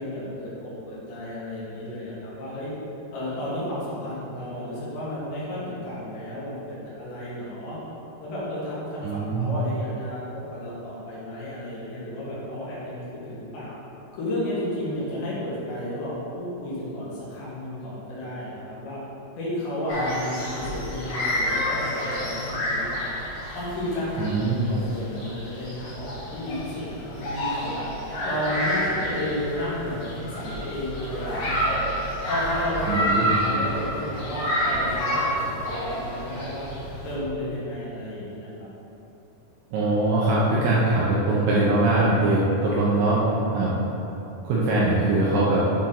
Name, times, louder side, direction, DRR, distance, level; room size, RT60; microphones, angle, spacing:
voice 1, 0.0-2.7 3.1-7.8 8.2-13.7 14.1-19.0 19.4-23.1 23.6-31.9 32.3-36.7 37.0-38.7, left 1 dB, 85° left, -8 dB, 3.9 m, -32 dB
voice 2, 9.0-9.5 24.2-24.6 32.9-33.3 39.7-43.2 43.5-43.7 44.4-45.6, right 2 dB, 80° right, -7 dB, 2.1 m, -22 dB
sound 1, 19.9-37.2, equal, 65° left, 1.6 m, -29 dB
8.1 x 4.4 x 3.8 m, 3.0 s
omnidirectional pair, 4.9 m